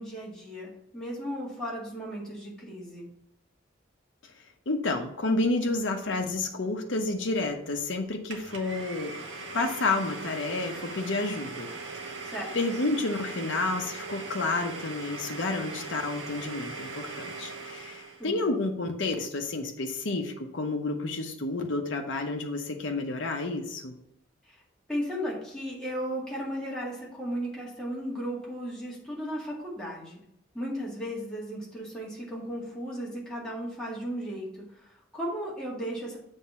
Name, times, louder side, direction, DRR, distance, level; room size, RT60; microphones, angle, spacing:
voice 1, 0.0-3.1 12.2-12.5 18.2-18.4 24.5-24.6 24.9-30.2 30.5-36.2, equal, 5° left, -6 dB, 1.9 m, -35 dB
voice 2, 4.7-9.1 9.5-11.7 12.5-23.9, left 2 dB, 75° left, 2 dB, 0.8 m, -30 dB
Domestic sounds home sounds, 8.3-18.3, right 3 dB, 85° right, 1.2 m, -40 dB
7.4 x 3.6 x 5.5 m, 0.78 s
head